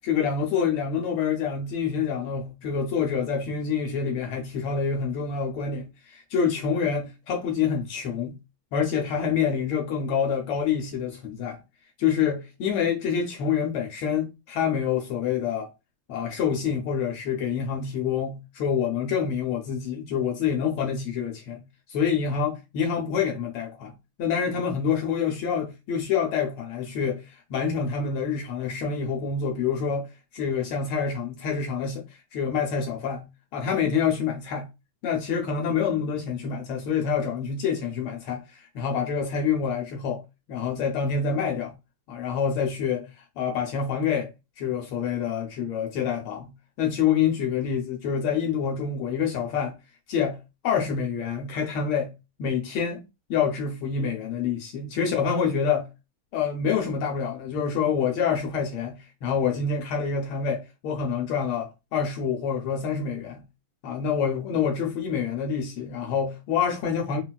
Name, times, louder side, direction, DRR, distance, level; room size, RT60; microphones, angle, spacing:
voice 1, 0.0-8.3 8.7-11.6 12.0-15.7 16.1-21.6 21.9-23.9 24.2-33.3 33.5-34.7 35.0-40.2 40.5-41.7 42.1-44.3 44.6-46.5 46.8-49.8 50.1-50.4 50.6-52.1 52.4-53.0 53.3-55.9 56.3-63.4 63.8-67.2, left 7 dB, 80° left, 1.4 m, -27 dB
3.8 x 2.2 x 2.2 m
omnidirectional pair, 2.4 m